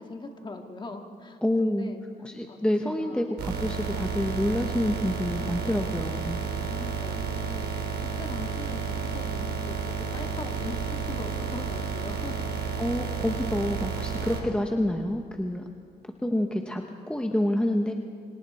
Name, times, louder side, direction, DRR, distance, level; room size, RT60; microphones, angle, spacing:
voice 1, 0.0-2.0 2.5-3.4 5.3-5.6 6.6-12.6, left 3 dB, 30° left, 4 dB, 2.0 m, -41 dB
voice 2, 1.4-1.9 2.2-6.4 12.8-15.6 16.2-17.9, left 1 dB, 5° left, 3 dB, 1.1 m, -28 dB
sound 1, 3.4-14.4, right 5 dB, 75° right, 3.5 m, -31 dB
29.0 x 25.0 x 4.3 m, 2.1 s
cardioid pair, 125°, 17 cm